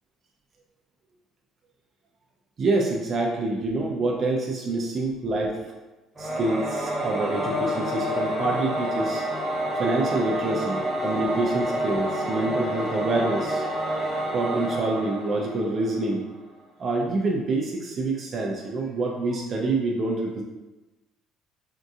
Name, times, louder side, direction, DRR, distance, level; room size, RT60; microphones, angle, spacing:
voice 1, 2.6-5.6 6.2-9.2 9.8-13.6 14.3-16.3 16.8-20.4, right 2 dB, 40° right, -1 dB, 0.4 m, -26 dB
Singing / Musical instrument, 6.2-16.2, equal, 10° right, 1.1 m, -29 dB
sound 1, 9.2-14.3, left 1 dB, 25° left, 0.6 m, -38 dB
3.6 x 2.6 x 2.4 m, 1.1 s
cardioid pair, 100°, 0 cm